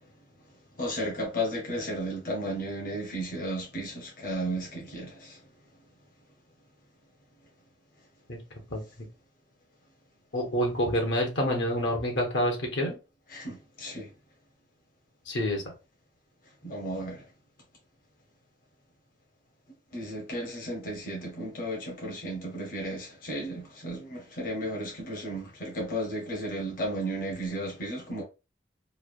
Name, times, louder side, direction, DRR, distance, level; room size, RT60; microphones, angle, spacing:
voice 1, 0.8-5.4 13.3-14.1 16.6-17.2 19.9-28.2, equal, 50° left, 0.7 m, -34 dB
voice 2, 10.3-13.0 15.3-15.6, equal, 80° left, 0.9 m, -27 dB
3.1 x 2.2 x 2.3 m
head